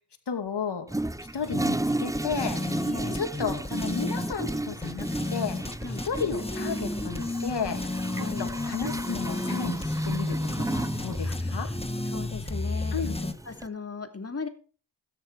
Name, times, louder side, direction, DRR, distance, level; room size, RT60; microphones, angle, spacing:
voice 1, 0.3-0.9 1.3-2.6 3.1-5.6 6.0-7.8 8.4-11.7 12.9-13.2, left 6 dB, 65° left, 6 dB, 2.6 m, -33 dB
Toilet flush, 0.9-13.7, right 1 dB, 5° right, 0.7 m, -34 dB
sound 1, 1.9-13.3, left 2 dB, 15° left, 1.5 m, -32 dB
voice 2, 2.8-3.2 5.8-6.0 8.2-8.5 11.2-11.6 12.1-13.0 13.5-14.5, left 4 dB, 35° left, 6 dB, 2.8 m, -37 dB
13.5 x 10.5 x 4.7 m, 0.40 s
supercardioid pair, 40°, 44 cm